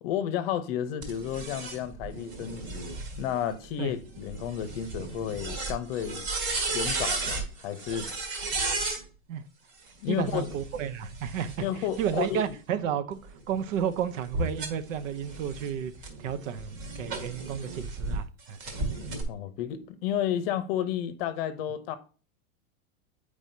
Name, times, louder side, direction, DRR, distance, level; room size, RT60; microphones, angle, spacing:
voice 1, 0.0-6.3 6.7-8.2 10.0-10.5 11.6-12.5 19.3-22.0, left 10 dB, 45° left, 0.7 m, -32 dB
sound 1, 1.0-9.0 10.2-12.5 13.1-18.2 18.6-19.2, right 3 dB, 35° right, 1.5 m, -35 dB
voice 2, 10.1-15.9 16.2-18.6, right 9 dB, 65° right, 0.7 m, -32 dB
sound 2, 12.2-13.1 13.5-13.8 14.3-15.8 17.1-18.2 18.9-20.3, left 1 dB, 90° right, 2.5 m, -40 dB
7.5 x 4.8 x 2.7 m
hypercardioid pair, 140°, 42 cm